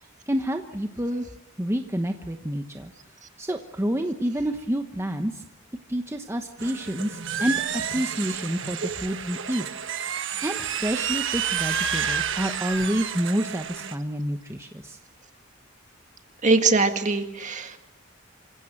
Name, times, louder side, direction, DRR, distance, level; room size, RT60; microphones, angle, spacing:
voice 1, 0.3-1.2 1.6-2.9 3.4-5.4 5.9-9.7 10.4-15.0, equal, 15° right, 5 dB, 1.1 m, -28 dB
sound 1, 6.6-13.9, right 7 dB, 65° right, 1.3 m, -30 dB
voice 2, 16.4-17.8, right 3 dB, 40° right, 6 dB, 1.9 m, -22 dB
27.0 x 16.0 x 7.8 m, 1.0 s
head